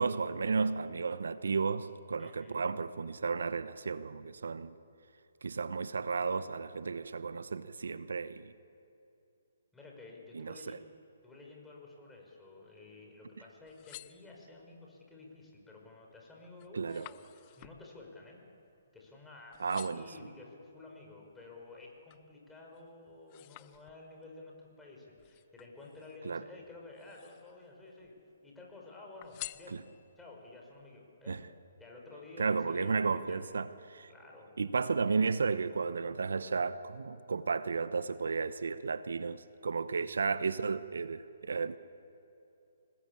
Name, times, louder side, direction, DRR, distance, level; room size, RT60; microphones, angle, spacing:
voice 1, 0.0-4.7 5.4-8.5 10.3-10.8 16.7-17.1 19.6-20.1 26.2-26.4 29.7-29.8 31.3-31.4 32.4-34.1 34.6-41.8, right 4 dB, 75° right, 14 dB, 0.9 m, -33 dB
voice 2, 2.2-2.6 9.7-10.8 11.2-18.4 18.9-28.2 28.4-29.8 30.2-31.4 31.8-33.5 34.1-34.5 40.0-40.1, left 3 dB, 5° left, -1 dB, 5.7 m, -52 dB
sound 1, 13.6-14.8 15.4-15.8 16.1-19.2 19.5-20.2 20.8-22.3 22.7-24.3 25.2-26.3 26.9-27.7 28.0-28.7 29.2-30.3 30.8-30.9, left 19 dB, 30° left, 0.7 m, -51 dB
26.0 x 20.0 x 8.6 m, 2.8 s
figure-of-eight pair, 140°, 0 cm